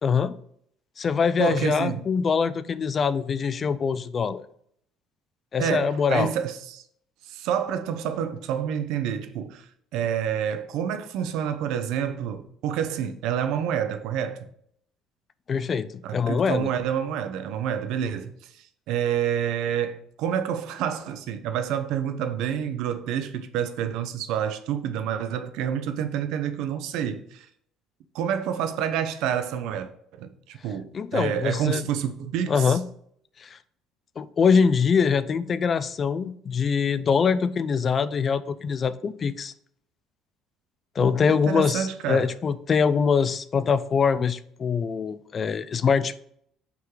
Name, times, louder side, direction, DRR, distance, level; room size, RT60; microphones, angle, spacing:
voice 1, 0.0-0.3 1.0-4.4 5.5-6.3 15.5-16.7 30.9-31.8 32.5-32.8 33.4-33.6 34.2-39.5 41.0-46.2, left 6 dB, 35° left, 0.3 m, -23 dB
voice 2, 1.4-2.1 5.6-6.8 7.2-14.5 16.0-27.5 28.1-29.9 30.2-32.8 41.0-42.3, right 9 dB, 75° right, 0.7 m, -28 dB
5.8 x 3.8 x 4.6 m
cardioid pair, 120°, 0 cm